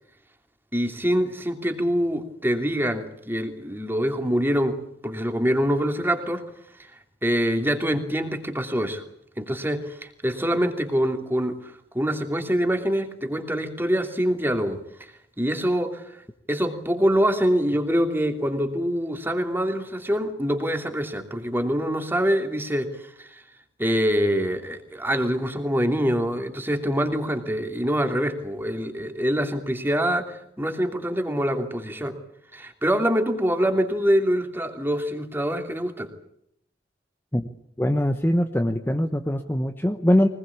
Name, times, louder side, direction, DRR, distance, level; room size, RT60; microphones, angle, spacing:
voice 1, 0.7-4.8 5.0-6.4 7.2-9.0 9.4-15.1 15.4-16.0 16.5-23.4 23.8-32.2 32.5-36.1, equal, 10° right, 6 dB, 2.9 m, -25 dB
voice 2, 37.8-40.3, equal, 10° left, 6 dB, 1.1 m, -22 dB
24.0 x 20.5 x 8.6 m, 0.74 s
head